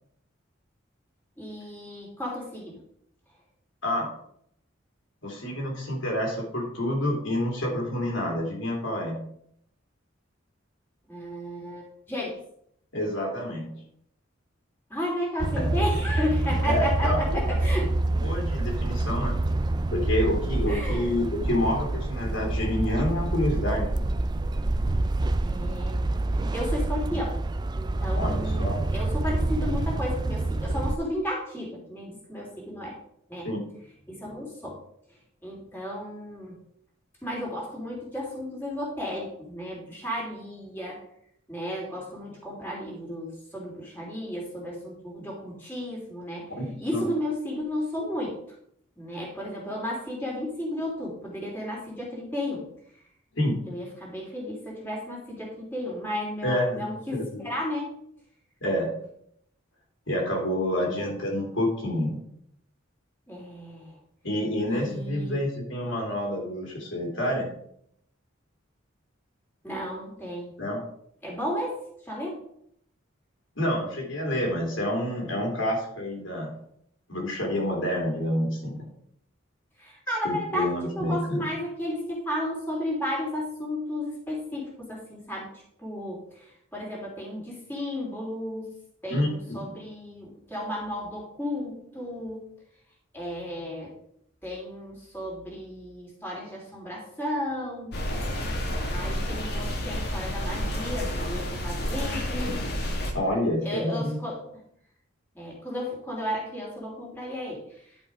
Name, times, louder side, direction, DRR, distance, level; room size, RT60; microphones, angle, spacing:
voice 1, 1.4-2.8 11.1-12.4 14.9-17.9 20.7-21.1 25.4-26.0 26.5-27.4 27.7-33.0 33.3-33.5 34.1-34.8 35.4-36.6 37.2-41.0 41.5-46.5 46.8-48.4 49.0-52.7 53.7-57.9 63.3-64.0 64.7-65.4 69.6-70.6 71.2-71.8 72.1-72.4 79.8-85.5 85.8-88.7 89.0-92.4 93.1-93.9 94.4-98.0 98.9-102.6 103.6-104.4 105.3-107.6, left 1 dB, 10° left, -4 dB, 3.0 m, -33 dB
voice 2, 5.2-9.2 12.9-13.7 15.6-15.7 16.6-17.4 18.2-19.4 19.9-23.9 28.1-28.8 33.4-33.6 46.6-47.0 53.3-53.6 56.4-57.4 58.6-58.9 60.1-62.2 64.2-67.5 70.6-70.8 73.5-76.5 77.1-78.8 80.2-81.5 89.1-89.6 103.1-104.2, left 1 dB, 75° left, -1 dB, 3.3 m, -28 dB
sound 1, 15.4-31.0, right 2 dB, 20° right, 0.3 m, -27 dB
sound 2, 97.9-103.1, equal, 55° left, 1.6 m, -30 dB
10.5 x 5.5 x 4.9 m, 0.70 s
head